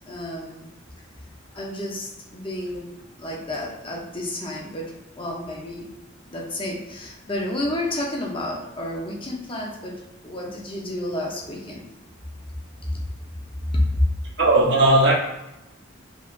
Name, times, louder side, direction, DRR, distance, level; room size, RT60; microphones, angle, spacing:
voice 1, 0.1-0.7 1.6-5.9 6.3-11.8 12.9-13.0 13.7-14.0, left 1 dB, 25° left, -2 dB, 0.9 m, -30 dB
voice 2, 14.4-15.1, right 2 dB, 60° right, -4 dB, 1.1 m, -16 dB
5.1 x 3.3 x 2.6 m, 0.92 s
head